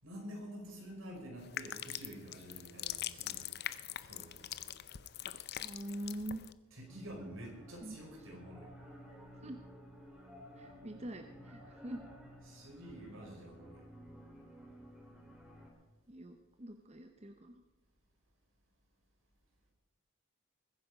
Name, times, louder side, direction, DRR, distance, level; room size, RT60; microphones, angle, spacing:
voice 1, 0.0-3.5 4.1-4.8 6.7-8.7 12.5-13.9, equal, 70° right, 0 dB, 5.3 m, -49 dB
sound 1, 1.4-6.5, left 12 dB, 50° left, 0.6 m, -43 dB
voice 2, 5.6-6.4 7.8-8.0 9.4-9.6 10.6-12.0 16.1-17.6, right 1 dB, 30° right, 6 dB, 0.8 m, -44 dB
sound 2, 6.9-15.7, equal, 5° right, 2.6 m, -54 dB
21.5 x 9.9 x 5.1 m, 1.2 s
head